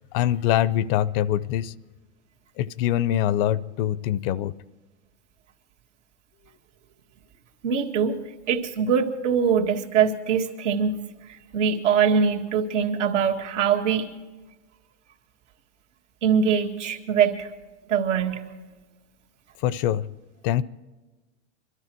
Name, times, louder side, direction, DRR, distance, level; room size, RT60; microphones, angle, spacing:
voice 1, 0.1-1.7 2.6-4.5 19.6-20.1 20.4-20.6, left 11 dB, 50° left, 19 dB, 0.6 m, -24 dB
voice 2, 7.6-8.2 8.5-14.1 16.2-17.5 17.9-18.4, right 7 dB, 80° right, 1 dB, 1.9 m, -23 dB
22.0 x 13.0 x 4.5 m, 1.2 s
hypercardioid pair, 120°, 35 cm